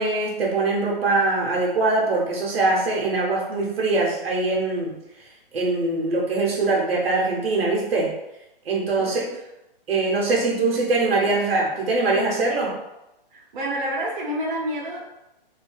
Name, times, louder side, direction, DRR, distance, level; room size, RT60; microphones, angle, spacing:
voice 1, 0.0-4.9 5.5-8.1 8.6-9.2 9.9-12.7, right 3 dB, 85° right, -3 dB, 0.9 m, -22 dB
voice 2, 9.0-9.3 11.3-11.4 13.3-15.0, right 1 dB, 60° right, -3 dB, 0.9 m, -29 dB
2.6 x 2.3 x 2.6 m, 0.91 s
hypercardioid pair, 145°, 29 cm